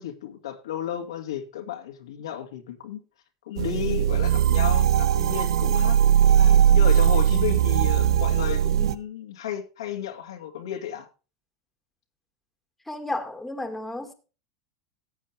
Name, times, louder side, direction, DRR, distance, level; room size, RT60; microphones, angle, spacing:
voice 1, 0.0-3.0 3.5-11.1, left 10 dB, 85° left, 2.3 m, -33 dB
sound 1, 3.6-8.9, right 10 dB, 85° right, 0.9 m, -19 dB
voice 2, 12.9-14.1, left 2 dB, 5° left, 2.2 m, -32 dB
14.5 x 8.6 x 3.4 m
hypercardioid pair, 110°, 3 cm